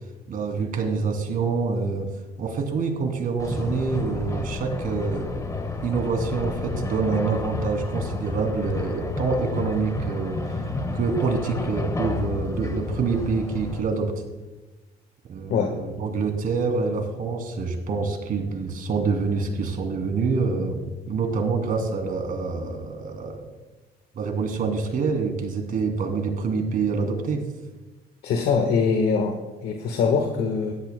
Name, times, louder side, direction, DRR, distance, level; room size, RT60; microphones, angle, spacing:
voice 1, 0.3-2.1 2.4-5.4 5.8-10.7 10.9-14.1 15.3-23.5 24.1-27.4, right 4 dB, 55° right, 3 dB, 2.7 m, -26 dB
sound 1, 3.4-13.8, left 3 dB, 20° left, 1.4 m, -31 dB
voice 2, 28.2-29.4 29.6-30.7, left 5 dB, 75° left, 4 dB, 1.4 m, -22 dB
17.5 x 12.5 x 2.2 m, 1.2 s
cardioid pair, 110°, 17 cm